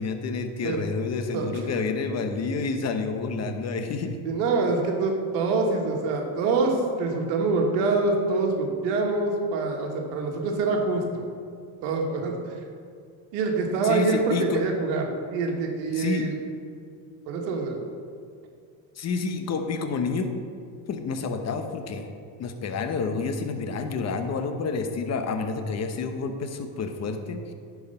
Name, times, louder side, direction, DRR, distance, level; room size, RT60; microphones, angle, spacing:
voice 1, 0.0-4.2 13.8-14.6 15.9-16.3 19.0-20.3 20.9-22.1 22.4-27.5, left 4 dB, 35° left, 6 dB, 0.9 m, -29 dB
voice 2, 4.2-11.2 11.8-12.6 13.3-15.0 15.3-16.3 17.3-17.8, right 3 dB, 80° right, 1 dB, 1.5 m, -25 dB
10.5 x 4.7 x 5.5 m, 2.3 s
supercardioid pair, 110°, 45 cm